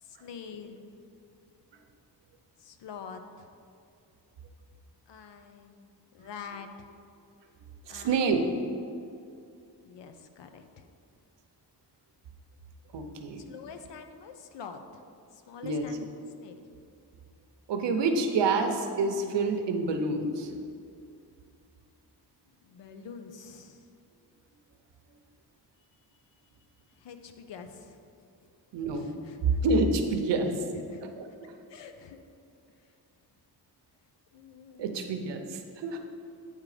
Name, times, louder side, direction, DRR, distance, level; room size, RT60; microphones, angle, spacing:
voice 1, 0.0-0.9 2.6-3.5 5.1-5.9 6.1-6.9 7.9-8.5 9.8-10.9 13.5-15.0 15.3-16.7 22.6-23.9 26.9-28.3 28.9-29.6 30.7-31.1 31.7-32.2 32.8-32.9 34.3-35.0, left 6 dB, 90° left, 7 dB, 0.7 m, -46 dB
voice 2, 7.9-8.4 12.9-13.4 15.6-15.8 17.7-20.5 28.7-29.1 29.4-30.5 31.2-31.3 34.8-36.0, right 3 dB, 85° right, 5 dB, 0.8 m, -27 dB
8.9 x 3.7 x 4.9 m, 2.5 s
wide cardioid pair, 170°, 41 cm